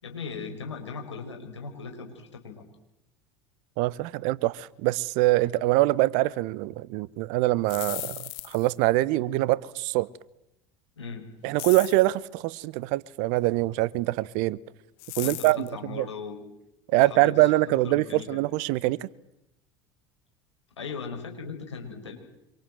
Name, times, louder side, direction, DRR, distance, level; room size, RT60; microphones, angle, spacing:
voice 1, 0.0-2.6 11.0-11.3 15.2-16.4 16.9-17.4 17.6-18.4 20.8-22.2, left 5 dB, 85° left, 5.7 m, -38 dB
voice 2, 3.8-10.1 11.4-14.6 15.2-16.1 16.9-19.1, right 18 dB, 60° right, 1.1 m, -24 dB
sound 1, 7.5-8.8 11.6-12.1 15.0-15.7, left 24 dB, 60° left, 1.1 m, -37 dB
26.0 x 24.0 x 7.9 m
hypercardioid pair, 75°, 14 cm